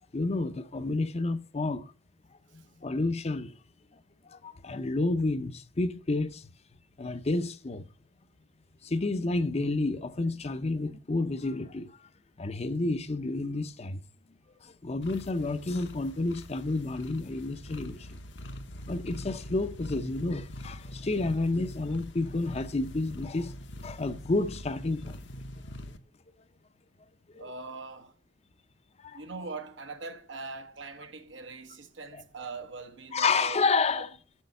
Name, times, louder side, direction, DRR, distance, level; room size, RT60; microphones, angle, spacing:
voice 1, 0.1-1.9 2.5-3.6 4.2-6.5 7.0-7.8 8.8-12.1 12.4-14.0 14.5-18.2 18.9-23.5 23.8-25.3 27.3-27.4 29.0-29.2 32.1-32.2 33.1-34.1, left 3 dB, 35° left, 0.6 m, -30 dB
sound 1, 15.0-26.0, left 1 dB, 70° left, 1.0 m, -43 dB
voice 2, 27.4-28.1 29.1-33.6 33.9-34.0, right 3 dB, 85° right, 1.2 m, -41 dB
7.3 x 6.4 x 5.3 m
head